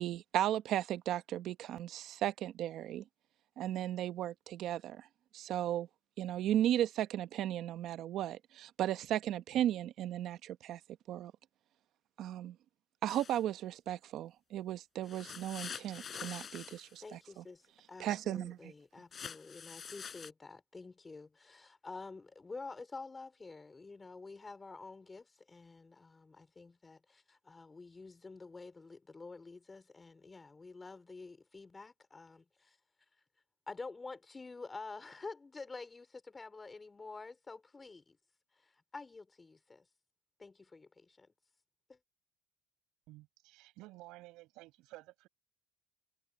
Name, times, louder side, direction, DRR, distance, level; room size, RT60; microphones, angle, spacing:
voice 1, 0.0-3.0 3.6-5.1 5.3-5.9 6.2-10.8 11.1-11.3 12.2-12.6 13.0-17.4 18.0-18.7, right 12 dB, 65° right, 1.0 m, -35 dB
sound 1, 13.1-13.4 15.0-17.0 19.1-20.3, left 7 dB, 40° left, 4.9 m, -46 dB
voice 2, 17.0-32.8 33.7-38.2 38.6-39.9 40.4-41.3 41.9-42.0, left 3 dB, 20° left, 3.6 m, -49 dB
voice 3, 43.1-45.3, right 19 dB, 85° right, 7.6 m, -53 dB
cardioid pair, 100°, 0 cm